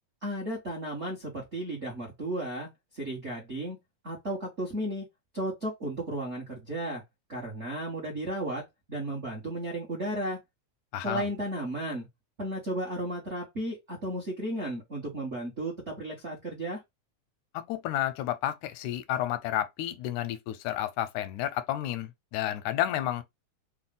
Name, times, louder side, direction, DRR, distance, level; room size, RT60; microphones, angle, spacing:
voice 1, 0.2-2.7 2.9-3.8 4.0-5.0 5.3-7.0 7.3-8.6 8.9-10.4 11.0-12.1 12.4-16.8, right 1 dB, 60° right, 0.7 m, -34 dB
voice 2, 10.9-11.3 17.7-23.2, left 12 dB, 85° left, 2.1 m, -31 dB
4.7 x 2.1 x 3.8 m
omnidirectional pair, 3.4 m